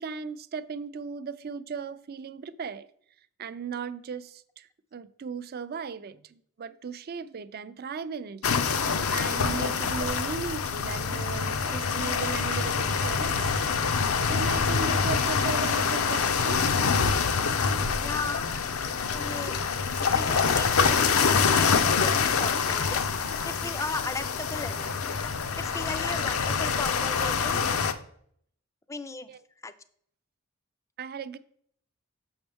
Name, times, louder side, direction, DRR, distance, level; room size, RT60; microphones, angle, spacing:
voice 1, 0.0-2.9 3.4-8.4 8.8-13.6 14.3-16.9 29.3-29.4 31.0-31.4, right 5 dB, 45° right, 14 dB, 0.4 m, -37 dB
sound 1, 8.4-27.9, left 5 dB, 80° left, 0.6 m, -26 dB
voice 2, 18.0-18.5 19.1-19.6 20.0-23.1 23.4-24.9 25.6-27.6 28.9-29.3 29.6-29.7, left 3 dB, 15° left, 12 dB, 0.4 m, -37 dB
7.1 x 6.0 x 3.5 m, 0.64 s
head